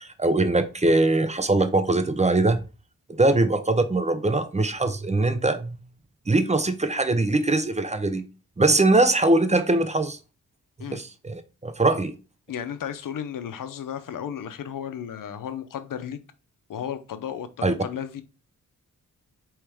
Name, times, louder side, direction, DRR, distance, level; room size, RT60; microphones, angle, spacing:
voice 1, 0.0-2.6 3.1-5.8 6.3-8.2 8.6-10.2 10.9-12.1 17.6-17.7, right 2 dB, 20° right, 0.6 m, -22 dB
voice 2, 12.5-16.2 16.7-18.2, left 9 dB, 75° left, 0.6 m, -34 dB
4.7 x 3.1 x 3.4 m
cardioid pair, 65°, 33 cm